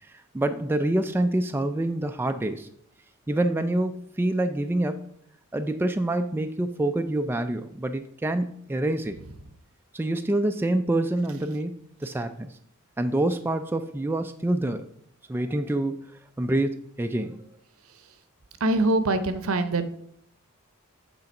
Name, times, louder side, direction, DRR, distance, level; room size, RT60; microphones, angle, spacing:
voice 1, 0.0-2.7 3.3-5.1 5.5-9.2 9.9-12.6 13.0-14.9 15.3-15.9 16.4-17.4, right 1 dB, 10° right, 7 dB, 0.3 m, -26 dB
voice 2, 18.6-19.9, right 2 dB, 70° right, 11 dB, 0.7 m, -23 dB
8.3 x 3.9 x 5.2 m, 0.67 s
head